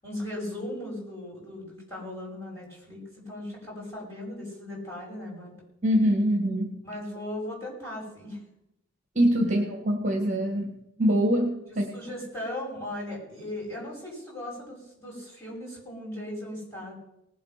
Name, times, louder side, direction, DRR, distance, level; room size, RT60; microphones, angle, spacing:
voice 1, 0.0-5.6 6.8-8.4 11.9-17.0, left 1 dB, 15° left, -5 dB, 5.9 m, -37 dB
voice 2, 5.8-6.7 9.1-11.9, equal, 35° right, 2 dB, 1.8 m, -24 dB
19.0 x 7.7 x 5.9 m, 0.83 s
head